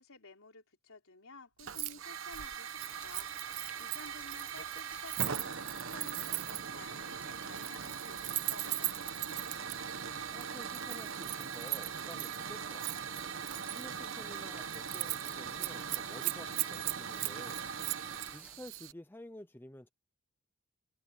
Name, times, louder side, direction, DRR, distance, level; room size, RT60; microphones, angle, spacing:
voice 1, 0.0-3.3 3.8-9.0, left 3 dB, 70° left, 4.1 m, -54 dB
Hiss / Fire, 1.6-18.9, right 6 dB, 60° right, 1.3 m, -41 dB
Keys jangling, 1.7-1.9 2.2-6.7 7.4-9.8 10.4-12.4 12.8-13.9 14.2-14.4 14.7-15.3 15.6-18.3 18.7-18.9, right 24 dB, 85° right, 0.3 m, -38 dB
sound 1, 2.8-18.6, right 1 dB, 5° right, 1.2 m, -56 dB
voice 2, 10.3-13.1 13.7-17.7 18.3-19.9, left 1 dB, 10° left, 0.7 m, -51 dB
head